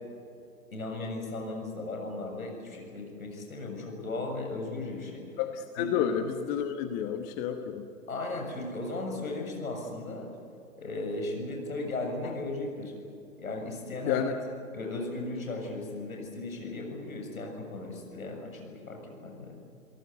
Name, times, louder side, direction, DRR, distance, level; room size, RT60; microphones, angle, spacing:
voice 1, 0.7-5.3 5.8-5.9 8.1-10.3 10.8-12.9 13.4-14.2 14.7-19.6, left 2 dB, 65° left, 2 dB, 7.2 m, -36 dB
voice 2, 5.4-7.9 12.2-12.3 14.1-14.4, left 8 dB, 20° left, 7 dB, 1.1 m, -30 dB
29.5 x 18.0 x 8.2 m, 2.7 s
figure-of-eight pair, 120°, 44 cm